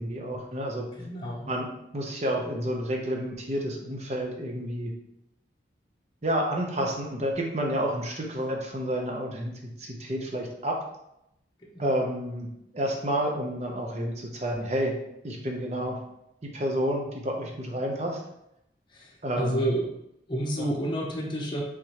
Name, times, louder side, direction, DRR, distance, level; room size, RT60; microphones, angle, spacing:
voice 1, 0.0-0.9 1.5-1.7 1.9-4.9 6.2-9.5 9.8-10.8 11.8-12.5 12.7-15.0 15.2-16.0 16.4-18.2 19.2-19.7, equal, 40° right, 0 dB, 0.8 m, -30 dB
voice 2, 0.9-1.6 11.6-11.9 18.9-19.9 20.3-21.6, right 1 dB, 25° left, -1 dB, 0.7 m, -30 dB
4.7 x 3.6 x 3.0 m, 0.81 s
head